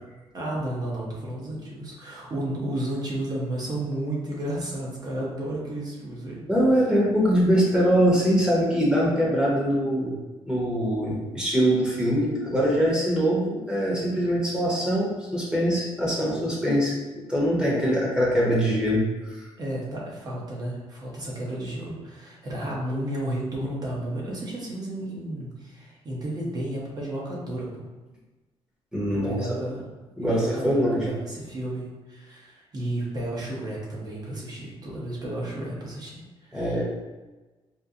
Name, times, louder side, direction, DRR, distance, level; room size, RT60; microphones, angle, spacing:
voice 1, 0.3-6.4 19.6-27.9 29.1-29.8 30.2-36.8, right 1 dB, 35° right, -4 dB, 1.0 m, -32 dB
voice 2, 6.5-10.2 10.5-19.3 28.9-29.4 30.2-31.1 36.5-36.8, equal, 10° right, -6 dB, 1.0 m, -23 dB
4.2 x 2.2 x 2.5 m, 1.2 s
cardioid pair, 130°, 11 cm